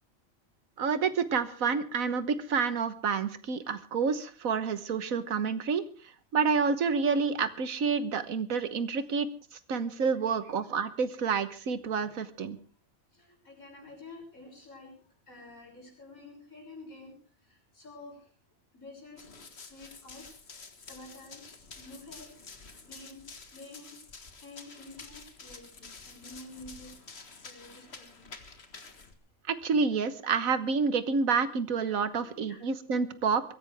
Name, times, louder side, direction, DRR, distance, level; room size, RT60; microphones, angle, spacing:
voice 1, 0.8-5.8 6.3-9.3 9.7-12.6 29.5-33.4, right 5 dB, 85° right, 12 dB, 1.6 m, -28 dB
voice 2, 13.1-17.2 17.4-18.3 18.7-20.3 20.9-24.0 24.4-27.0 27.4-28.3 32.2-32.6, left 2 dB, 85° left, -1 dB, 6.9 m, -50 dB
Run, 19.2-29.1, left 4 dB, 50° left, 1.9 m, -49 dB
23.0 x 15.5 x 3.5 m, 0.39 s
omnidirectional pair, 1.4 m